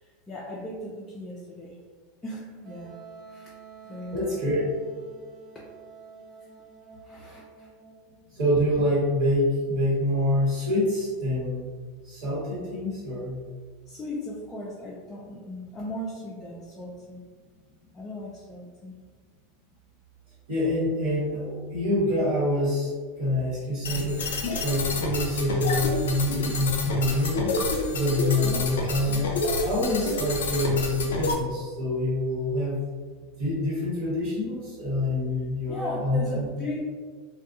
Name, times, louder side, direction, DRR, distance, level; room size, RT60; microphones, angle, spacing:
voice 1, 0.0-1.8 2.2-3.0 3.3-3.5 3.8-4.2 7.0-7.7 13.9-17.2 17.9-19.0 28.4-28.6 35.7-36.9, left 1 dB, 20° left, -5 dB, 0.5 m, -37 dB
Wind instrument woodwind instrument, 2.6-8.2, right 6 dB, 35° right, 1.0 m, -48 dB
voice 2, 4.1-4.6 8.3-11.7 12.0-13.4 20.5-22.9 23.2-24.3 24.6-27.6 27.9-29.2 29.6-32.8 33.4-36.5, left 1 dB, 55° right, -8 dB, 1.3 m, -26 dB
sound 1, 23.8-31.3, left 2 dB, 75° left, 0.4 m, -29 dB
2.5 x 2.3 x 2.5 m, 1.5 s
hypercardioid pair, 90°, 0 cm